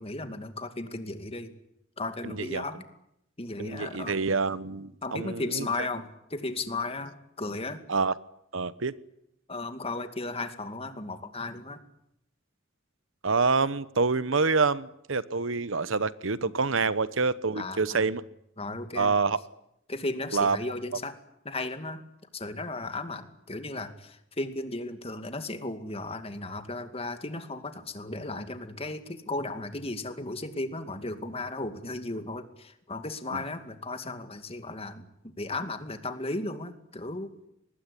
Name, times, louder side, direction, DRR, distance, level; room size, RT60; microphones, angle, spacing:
voice 1, 0.0-1.5 2.0-2.8 3.4-4.2 5.0-7.8 9.5-11.8 17.6-18.0 18.6-19.1 19.9-21.1 21.4-22.0 22.3-37.3, left 2 dB, 30° left, 9 dB, 2.3 m, -35 dB
voice 2, 2.2-2.6 3.6-5.9 7.9-8.1 8.5-8.9 13.2-18.2 18.9-19.4 20.3-20.6 33.3-33.4, right 4 dB, 80° right, 16 dB, 1.1 m, -27 dB
24.0 x 20.5 x 9.9 m, 0.78 s
head